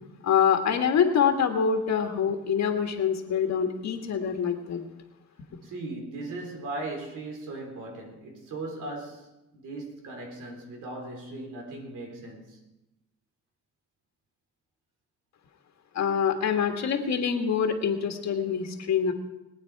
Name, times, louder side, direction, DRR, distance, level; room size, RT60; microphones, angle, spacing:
voice 1, 0.2-4.8 16.0-19.1, left 7 dB, 65° left, 1.7 m, -25 dB
voice 2, 5.6-12.6, right 2 dB, 85° right, 3.5 m, -38 dB
22.0 x 8.8 x 4.7 m
cardioid pair, 90°, 30 cm